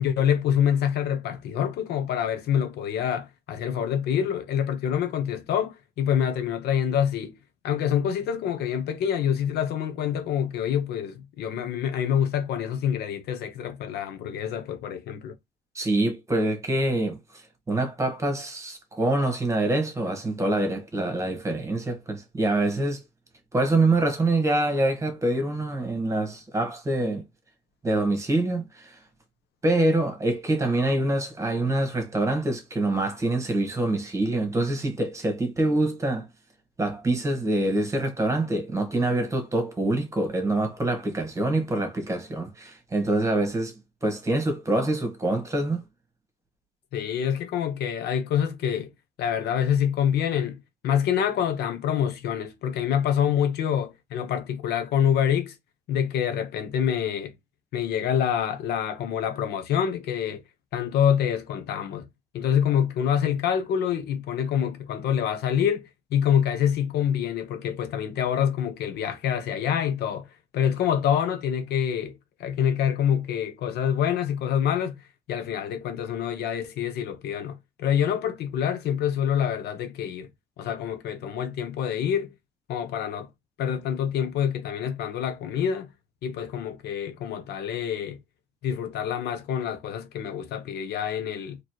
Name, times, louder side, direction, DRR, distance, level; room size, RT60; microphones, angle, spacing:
voice 1, 0.0-7.4 7.6-15.3 46.9-48.9 49.2-55.6 55.9-57.3 57.7-60.4 60.7-62.1 62.3-70.3 70.5-75.0 75.3-80.3 80.6-82.3 82.7-83.3 83.6-85.9 86.2-88.2 88.6-91.6, left 9 dB, 75° left, 0.9 m, -26 dB
voice 2, 15.7-23.0 23.5-27.2 27.8-29.0 29.6-36.3 36.8-43.7 44.0-45.8, right 2 dB, 15° right, 1.6 m, -25 dB
4.2 x 3.1 x 3.1 m
cardioid pair, 110°, 17 cm